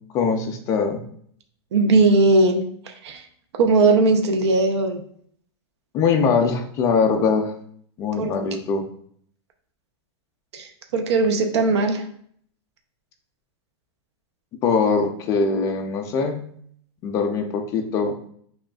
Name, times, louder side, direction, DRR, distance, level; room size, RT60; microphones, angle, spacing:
voice 1, 0.1-1.0 5.9-7.5 8.0-8.8 14.6-16.5 17.0-18.2, left 5 dB, 20° left, 4 dB, 0.4 m, -22 dB
voice 2, 1.7-3.2 3.5-5.0 8.2-8.3 10.5-12.1, right 3 dB, 75° right, 5 dB, 0.7 m, -19 dB
6.0 x 2.4 x 2.3 m, 0.62 s
supercardioid pair, 165°, 14 cm